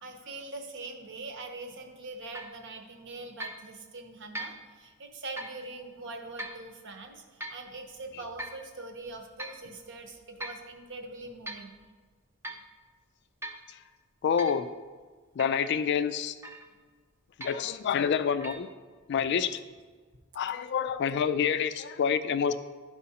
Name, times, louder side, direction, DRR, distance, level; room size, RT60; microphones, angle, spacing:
voice 1, 0.0-11.8, right 2 dB, 60° right, 4 dB, 0.9 m, -43 dB
sound 1, 2.3-2.6 3.4-3.6 4.3-4.6 5.4-5.6 6.4-6.6 7.4-7.7 8.4-8.7 9.4-9.6 10.4-10.7 11.2-11.7 12.4-12.7 13.4-13.7 14.4-14.6 15.4-15.7 16.4-16.8 17.4-17.7 18.4-18.6, right 1 dB, 10° right, 0.4 m, -40 dB
voice 2, 14.2-14.7 15.4-16.3 17.4-18.7 19.1-19.6 20.4-22.6, left 7 dB, 50° left, 11 dB, 0.3 m, -27 dB
12.5 x 4.8 x 2.8 m, 1.4 s
head